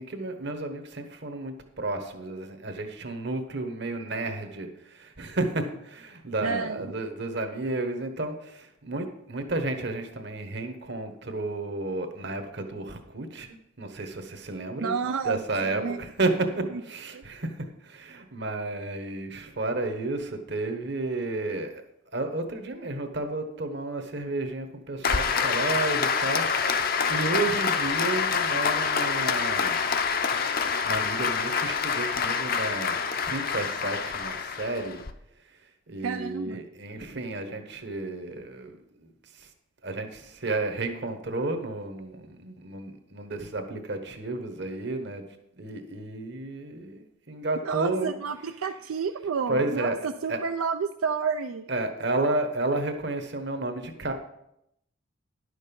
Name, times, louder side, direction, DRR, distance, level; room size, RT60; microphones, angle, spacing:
voice 1, 0.0-14.9 15.2-21.7 22.1-29.8 30.8-35.0 35.4-35.6 35.9-39.5 39.8-45.2 45.6-48.2 48.5-48.8 49.5-50.4 51.7-54.1, right 2 dB, 55° right, 6 dB, 1.2 m, -32 dB
voice 2, 6.4-6.9 14.8-16.0 17.1-17.2 36.0-36.6 47.6-51.7, right 6 dB, 85° right, 7 dB, 0.4 m, -30 dB
Applause, 25.0-35.1, left 6 dB, 45° left, 0.6 m, -26 dB
11.0 x 6.5 x 5.3 m, 0.80 s
head